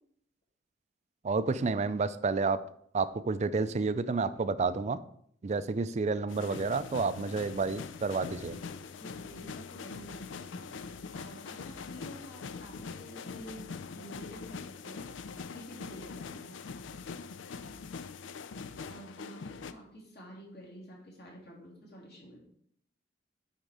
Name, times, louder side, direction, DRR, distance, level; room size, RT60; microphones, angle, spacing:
voice 1, 1.2-2.6 2.9-5.0 5.4-8.6, right 4 dB, 40° right, 13 dB, 0.4 m, -30 dB
sound 1, 6.3-19.7, left 5 dB, 85° left, 0.4 m, -43 dB
voice 2, 8.5-16.6 18.8-22.4, equal, 60° left, -3 dB, 3.1 m, -50 dB
9.1 x 4.4 x 4.9 m, 0.68 s
head